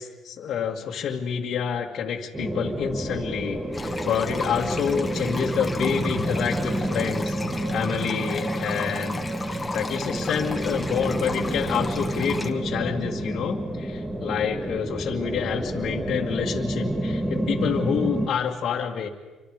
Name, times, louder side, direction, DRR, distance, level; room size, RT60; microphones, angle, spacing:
voice 1, 0.0-7.4 7.7-19.1, left 7 dB, 65° left, -1 dB, 2.1 m, -28 dB
sound 1, 2.3-18.3, right 1 dB, 10° right, 2.3 m, -29 dB
sound 2, 3.7-12.5, left 3 dB, 20° left, 2.2 m, -36 dB
28.5 x 25.0 x 5.1 m, 1.2 s
cardioid pair, 90°, 0 cm